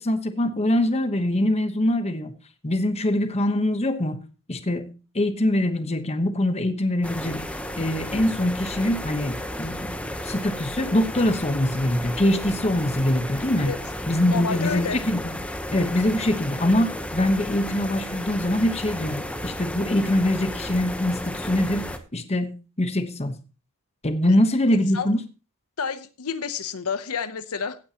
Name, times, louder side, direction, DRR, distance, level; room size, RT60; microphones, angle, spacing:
voice 1, 0.0-2.3 2.6-4.2 4.5-7.4 7.8-13.8 14.1-15.3 15.7-23.4 24.0-25.2, left 1 dB, 30° left, 1.1 m, -23 dB
sound 1, 7.0-22.0, left 1 dB, 5° left, 0.9 m, -33 dB
voice 2, 14.3-15.0 24.9-25.1 25.8-27.8, left 6 dB, 80° left, 0.8 m, -29 dB
16.5 x 9.0 x 2.9 m
head